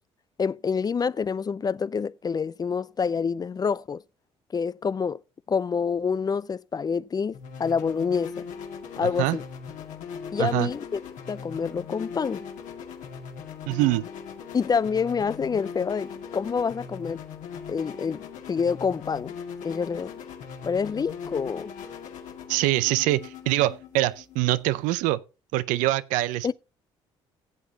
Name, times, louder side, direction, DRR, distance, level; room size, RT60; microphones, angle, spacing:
voice 1, 0.4-4.0 4.5-5.2 5.5-8.3 9.0-9.4 10.3-11.0 11.3-12.4 14.5-17.2 17.7-19.3 19.6-20.1 20.6-21.7 26.4-26.5, left 6 dB, 30° left, 0.4 m, -27 dB
sound 1, 7.3-25.1, left 6 dB, 70° left, 2.1 m, -40 dB
voice 2, 9.0-9.4 10.4-10.7 13.7-14.1 22.5-25.2 25.5-26.5, right 17 dB, 80° right, 0.6 m, -24 dB
16.0 x 8.0 x 2.8 m
supercardioid pair, 60°, 13 cm